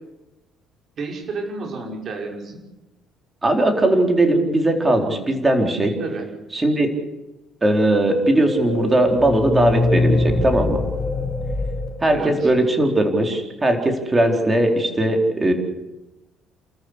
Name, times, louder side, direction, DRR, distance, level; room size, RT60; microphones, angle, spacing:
voice 1, 1.0-2.6 6.0-6.3 12.1-12.5, right 3 dB, 45° right, 1 dB, 5.8 m, -30 dB
voice 2, 3.4-5.9 6.5-6.9 7.6-10.8 12.0-15.5, right 1 dB, 20° right, 3 dB, 4.2 m, -19 dB
sound 1, 8.1-12.8, left 2 dB, 5° left, 3.2 m, -24 dB
29.0 x 14.0 x 8.2 m, 1.0 s
cardioid pair, 115°, 0 cm